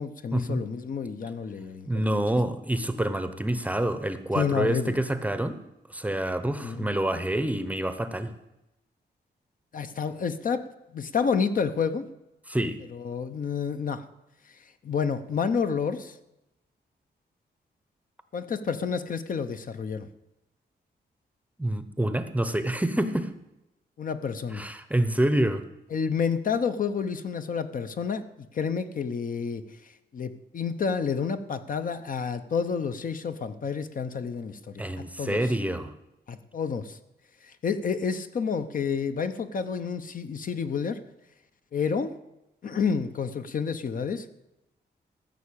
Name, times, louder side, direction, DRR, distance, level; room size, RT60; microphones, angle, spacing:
voice 1, 0.0-2.0 4.3-5.0 6.6-6.9 9.7-10.7 10.9-12.1 12.9-14.0 14.5-16.2 18.3-20.1 24.0-24.7 25.9-35.4 36.3-37.0 37.4-41.0 41.7-42.1 42.6-44.3, left 6 dB, 50° left, 9 dB, 0.8 m, -29 dB
voice 2, 1.9-5.6 5.9-8.3 12.5-12.8 21.6-23.3 24.5-25.6 34.8-35.9, right 1 dB, 10° right, 11 dB, 0.8 m, -27 dB
14.5 x 6.6 x 8.6 m, 0.92 s
wide cardioid pair, 160°, 18 cm